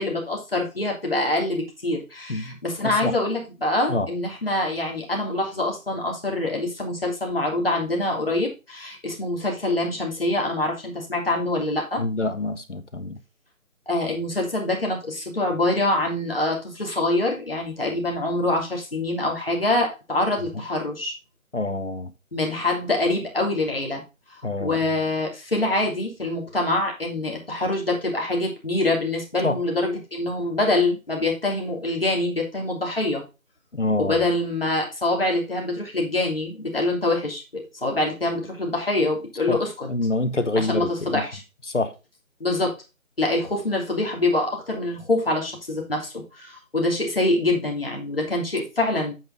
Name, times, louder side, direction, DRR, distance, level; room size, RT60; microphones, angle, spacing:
voice 1, 0.0-12.0 13.9-21.1 22.3-24.0 24.6-33.2 34.0-39.9 40.6-41.4 42.4-42.7 43.2-49.1, left 2 dB, 45° left, 3.2 m, -25 dB
voice 2, 2.3-3.2 3.9-4.1 12.0-13.2 21.5-22.1 24.4-24.8 29.4-29.6 33.7-34.3 39.5-39.6 39.9-41.2 41.7-41.9, left 2 dB, 60° left, 1.3 m, -26 dB
8.6 x 5.5 x 3.9 m
figure-of-eight pair, 170°, 41 cm